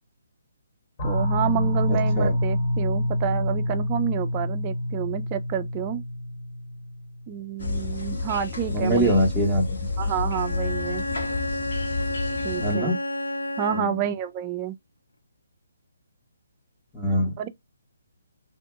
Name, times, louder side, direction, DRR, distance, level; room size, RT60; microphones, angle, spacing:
sound 1, 1.0-7.3, left 1 dB, 30° left, 1.1 m, -27 dB
voice 1, 1.0-6.0 7.3-9.1 10.0-11.0 12.4-13.0 13.6-14.8 17.4-17.5, right 10 dB, 25° right, 0.4 m, -29 dB
voice 2, 1.9-2.4 8.7-9.8 12.6-13.0 13.7-13.9 16.9-17.5, equal, 5° left, 0.8 m, -23 dB
sound 2, 7.6-12.7, left 3 dB, 65° left, 1.4 m, -30 dB
Bowed string instrument, 10.3-14.1, left 1 dB, 80° left, 0.4 m, -31 dB
2.8 x 2.5 x 2.2 m
figure-of-eight pair, 140°, 0 cm